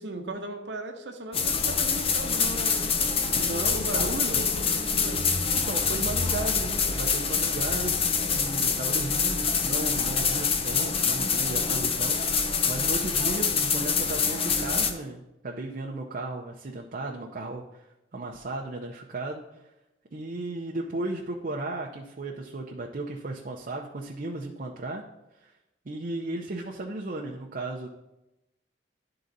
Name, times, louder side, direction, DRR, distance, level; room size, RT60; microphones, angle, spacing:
voice 1, 0.0-2.9 3.3-5.3, right 1 dB, 80° right, 4 dB, 1.0 m, -37 dB
sound 1, 1.3-14.9, left 5 dB, 35° left, 0.6 m, -26 dB
voice 2, 3.4-4.4 5.6-8.0 8.3-12.2 12.7-17.8 18.1-19.4 20.1-25.0 25.4-25.5 25.9-27.9, right 2 dB, 50° right, -1 dB, 0.6 m, -35 dB
11.5 x 3.9 x 4.0 m, 0.93 s
head